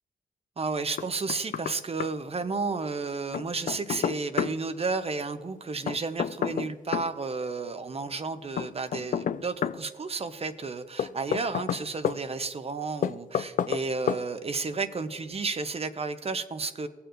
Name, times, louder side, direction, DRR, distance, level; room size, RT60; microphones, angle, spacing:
voice 1, 0.6-16.9, right 4 dB, 40° right, 10 dB, 0.8 m, -32 dB
Knock, 1.0-1.8 2.0-2.1 3.3-4.6 5.9-7.1 8.6-9.8 11.0-12.2 13.0-13.8 14.1-14.2, left 8 dB, 60° left, 0.4 m, -29 dB
18.5 x 6.9 x 2.6 m, 1.5 s
cardioid pair, 60°, 15 cm